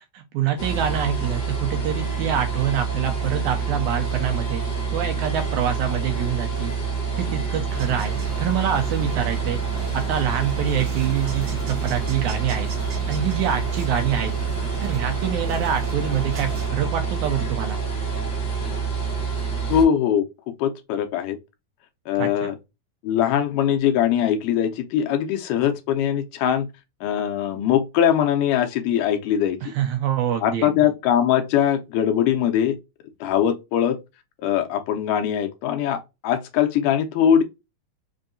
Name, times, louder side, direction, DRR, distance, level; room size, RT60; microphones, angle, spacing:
voice 1, 0.1-4.6 4.9-6.7 7.2-9.6 9.9-12.7 13.1-14.3 14.8-17.8 22.2-22.5 29.6-30.9, right 9 dB, 80° right, 1.9 m, -25 dB
sound 1, 0.6-19.9, right 5 dB, 55° left, 1.1 m, -27 dB
sound 2, 7.7-16.7, right 4 dB, 60° right, 2.0 m, -36 dB
voice 2, 19.7-20.3 20.6-21.4 22.1-22.6 23.0-26.7 27.0-29.6 30.4-32.8 33.2-34.0 34.4-37.4, left 9 dB, 80° left, 2.1 m, -21 dB
5.4 x 2.6 x 2.4 m
omnidirectional pair, 3.9 m